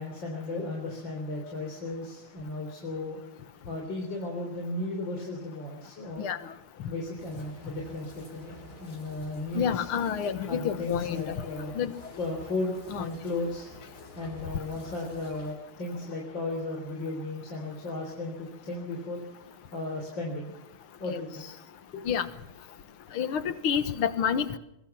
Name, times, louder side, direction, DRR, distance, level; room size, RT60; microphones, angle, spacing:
voice 1, 0.0-3.2 3.7-6.3 6.8-9.9 10.5-11.8 12.2-13.7 14.1-19.2 19.7-20.5 21.0-21.5 21.9-22.0, left 2 dB, 55° left, 0 dB, 4.3 m, -35 dB
sound 1, 7.2-15.5, left 1 dB, 35° left, 5.2 m, -49 dB
voice 2, 9.6-11.4 11.7-11.9 12.9-13.1 21.1-21.2 22.1-22.3 23.1-24.6, left 8 dB, 75° left, 13 dB, 2.1 m, -29 dB
23.5 x 21.5 x 5.9 m, 0.84 s
omnidirectional pair, 2.4 m